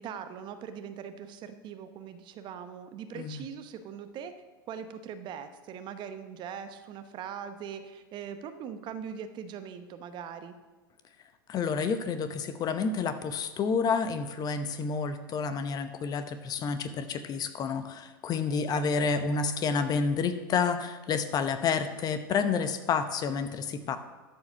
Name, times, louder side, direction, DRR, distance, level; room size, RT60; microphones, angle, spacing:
voice 1, 0.0-4.3 4.7-10.6, right 7 dB, 40° right, 10 dB, 0.9 m, -41 dB
voice 2, 11.5-24.0, left 5 dB, 35° left, 10 dB, 0.8 m, -29 dB
12.5 x 4.8 x 6.3 m, 1.3 s
hypercardioid pair, 90°, 12 cm